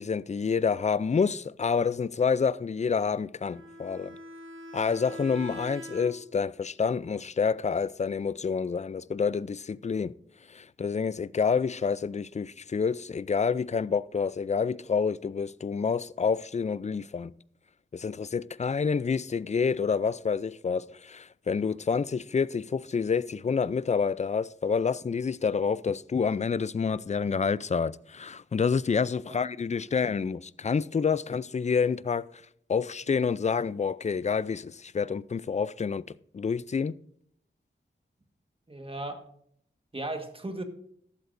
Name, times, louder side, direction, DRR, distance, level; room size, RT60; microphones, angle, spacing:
voice 1, 0.0-4.2 4.7-10.1 10.5-17.3 17.9-32.3 32.7-36.1 36.3-37.0, left 5 dB, 35° left, 0.4 m, -28 dB
Bowed string instrument, 3.5-6.5, equal, 75° right, 1.0 m, -43 dB
voice 2, 38.7-39.2 39.9-40.6, right 2 dB, 25° right, 1.5 m, -36 dB
14.5 x 12.5 x 2.6 m
wide cardioid pair, 60°, 21 cm